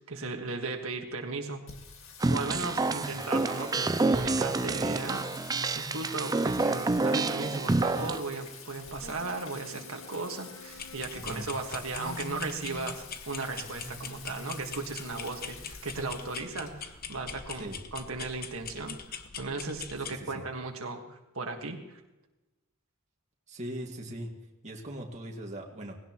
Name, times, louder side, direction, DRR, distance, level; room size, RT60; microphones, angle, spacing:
voice 1, 0.1-1.6 2.3-5.2 5.7-22.0, right 3 dB, 85° right, 3 dB, 1.6 m, -36 dB
Singing, 1.7-19.3, left 3 dB, 75° left, 1.9 m, -46 dB
sound 1, 2.2-8.2, right 3 dB, 20° right, 0.4 m, -28 dB
voice 2, 2.8-3.2 11.1-11.5 17.6-17.8 20.1-20.5 23.5-24.3 24.6-26.0, right 1 dB, 35° right, 0 dB, 2.0 m, -40 dB
sound 2, 10.7-20.2, left 7 dB, 45° left, 0.8 m, -43 dB
19.0 x 17.0 x 3.1 m, 1.0 s
head